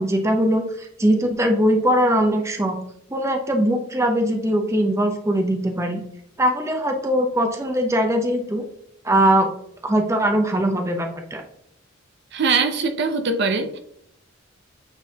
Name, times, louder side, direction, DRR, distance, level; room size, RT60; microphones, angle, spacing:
voice 1, 0.0-2.7 3.1-6.0 6.4-8.6 9.0-9.5 9.8-11.4, right 1 dB, 15° right, 3 dB, 0.6 m, -21 dB
voice 2, 12.3-13.8, right 4 dB, 55° right, 8 dB, 0.5 m, -22 dB
8.9 x 3.8 x 2.8 m, 0.72 s
head